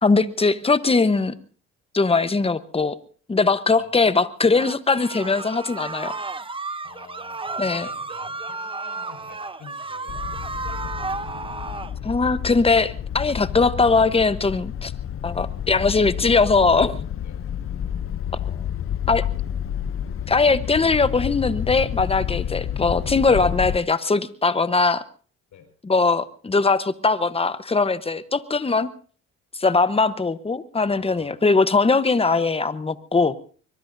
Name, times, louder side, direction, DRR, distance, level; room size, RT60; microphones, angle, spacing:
voice 1, 0.0-1.3 1.9-3.0 3.3-6.1 7.6-7.9 12.0-14.9 15.2-17.0 19.1-19.2 20.3-25.0 25.8-28.9 29.6-33.3, left 4 dB, 20° left, 13 dB, 1.0 m, -20 dB
sound 1, 4.5-11.9, right 3 dB, 15° right, 0.8 m, -33 dB
voice 2, 6.8-11.6 17.2-17.4 22.4-22.6 25.5-25.7 30.9-31.4, left 7 dB, 75° left, 6 dB, 5.0 m, -48 dB
sound 2, 10.1-23.8, left 9 dB, 45° left, 0.7 m, -30 dB
24.0 x 22.0 x 2.7 m, 0.42 s
cardioid pair, 90°, 30 cm